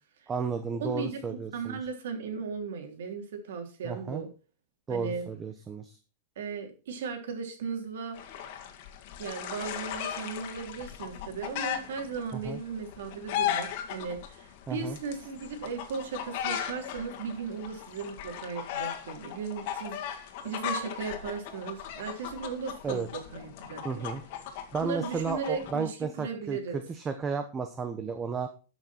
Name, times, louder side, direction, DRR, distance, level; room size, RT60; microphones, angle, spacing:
voice 1, 0.3-1.8 3.8-4.2 4.9-6.0 12.3-12.6 14.7-15.0 22.8-23.1 23.8-24.2 24.7-26.6 26.9-28.5, right 5 dB, 15° right, 8 dB, 0.8 m, -33 dB
voice 2, 0.8-4.3 4.9-5.2 6.3-8.2 9.2-23.8 24.8-26.8, right 5 dB, 80° right, 3 dB, 3.4 m, -37 dB
sound 1, 8.1-25.7, left 9 dB, 50° left, 1.8 m, -37 dB
12.5 x 6.2 x 4.4 m, 0.35 s
supercardioid pair, 160°, 0 cm